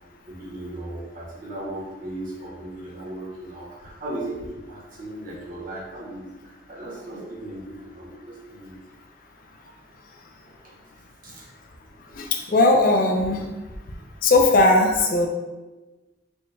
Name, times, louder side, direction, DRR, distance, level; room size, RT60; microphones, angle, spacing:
voice 1, 0.3-8.8 10.5-10.7 11.2-11.4, right 1 dB, 50° right, -4 dB, 1.0 m, -37 dB
voice 2, 12.2-13.5 14.2-15.3, left 2 dB, 50° left, 2 dB, 0.4 m, -18 dB
4.3 x 2.2 x 3.2 m, 1.2 s
head